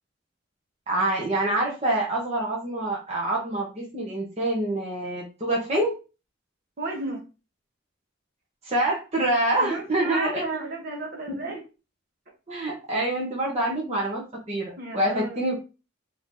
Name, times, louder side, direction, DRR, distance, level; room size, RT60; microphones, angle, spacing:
voice 1, 0.9-6.0 8.6-10.4 11.3-11.4 12.5-15.6, right 1 dB, 35° right, 1.1 m, -26 dB
voice 2, 6.8-7.2 9.6-11.6 12.9-13.0 14.8-15.4, right 2 dB, 50° right, 1.4 m, -33 dB
3.6 x 2.9 x 3.6 m
head